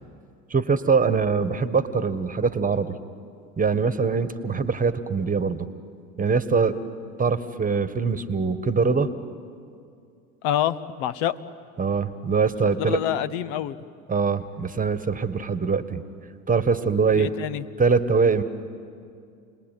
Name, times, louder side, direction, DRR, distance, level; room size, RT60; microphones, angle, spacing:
voice 1, 0.5-2.9 3.6-5.7 6.2-6.8 7.2-9.1 11.8-13.0 14.1-16.0 16.5-17.3 17.8-18.4, right 5 dB, 20° right, 13 dB, 1.5 m, -23 dB
voice 2, 10.4-11.4 12.8-13.8 17.2-17.6, left 11 dB, 65° left, 16 dB, 1.0 m, -26 dB
29.5 x 20.5 x 9.2 m, 2.4 s
hypercardioid pair, 80°, 40 cm